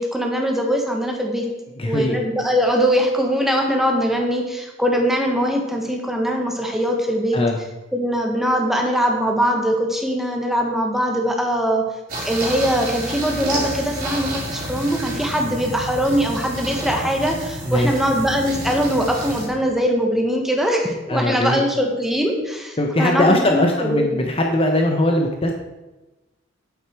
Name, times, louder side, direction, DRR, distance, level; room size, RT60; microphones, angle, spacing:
voice 1, 0.0-1.5 1.8-7.4 7.9-11.8 12.2-24.2, equal, ahead, 1 dB, 1.4 m, -21 dB
voice 2, 1.8-2.2 7.3-7.6 17.6-17.9 21.1-21.6 22.8-25.5, left 1 dB, 30° left, 2 dB, 0.9 m, -20 dB
sound 1, 12.1-19.5, right 1 dB, 45° right, 3.4 m, -30 dB
8.4 x 8.1 x 4.6 m, 1.1 s
head